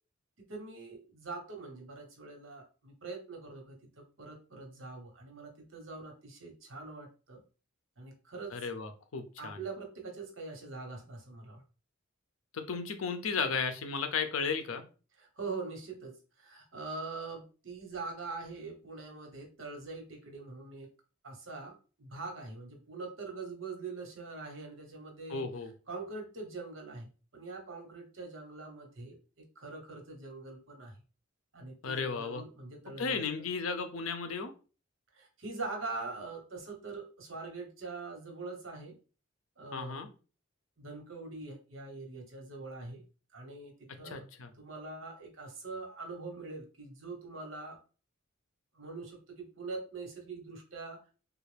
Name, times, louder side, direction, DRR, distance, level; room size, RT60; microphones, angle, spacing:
voice 1, 0.5-7.4 8.0-8.6 9.4-11.6 15.2-20.9 21.2-25.5 25.9-29.2 29.6-30.9 31.5-33.5 35.1-39.0 39.6-40.0 40.8-43.0 43.3-44.2 44.5-47.8 48.7-51.0, right 3 dB, 65° right, 2 dB, 1.1 m, -43 dB
voice 2, 8.5-9.6 12.5-14.8 25.3-25.7 31.8-32.4 33.0-34.5 39.7-40.1 44.0-44.5, left 5 dB, 80° left, 8 dB, 0.6 m, -34 dB
3.3 x 2.4 x 3.3 m, 0.36 s
head